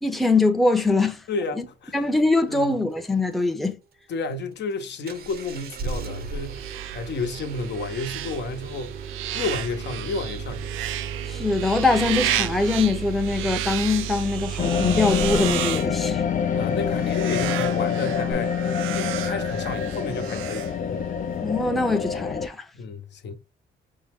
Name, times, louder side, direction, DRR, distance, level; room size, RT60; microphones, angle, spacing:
voice 1, 0.0-1.2 1.6-1.7 1.9-3.8 11.3-16.2 21.4-22.7, left 3 dB, ahead, 0.7 m, -23 dB
voice 2, 1.3-2.0 2.5-2.8 4.1-8.9 9.3-10.7 16.5-18.5 18.9-21.1 22.7-23.4, left 3 dB, 60° left, 0.9 m, -31 dB
Engine starting, 5.1-15.7 18.3-18.4, right 6 dB, 50° right, 0.7 m, -34 dB
sound 1, 5.3-21.3, right 13 dB, 85° right, 0.4 m, -33 dB
sound 2, 14.6-22.5, left 7 dB, 40° left, 0.5 m, -26 dB
5.4 x 2.1 x 3.5 m
cardioid pair, 90°, 20 cm